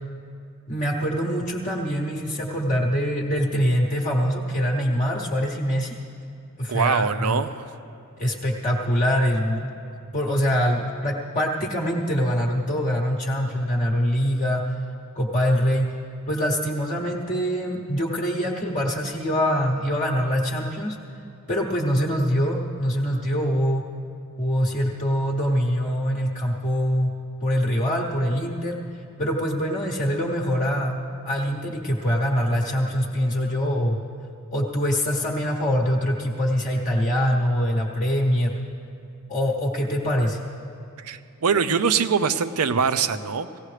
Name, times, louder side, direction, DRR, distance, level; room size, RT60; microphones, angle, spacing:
voice 1, 0.7-6.0 6.6-7.4 8.2-9.7 10.1-14.8 15.1-15.9 16.3-21.0 21.5-23.8 24.4-27.1 27.4-28.8 29.2-31.0 31.2-34.0 34.5-38.6 39.3-40.4, equal, 35° left, -2 dB, 0.9 m, -24 dB
voice 2, 6.7-7.6 41.0-43.6, right 6 dB, 80° right, 12 dB, 0.5 m, -23 dB
18.0 x 15.5 x 3.3 m, 2.5 s
head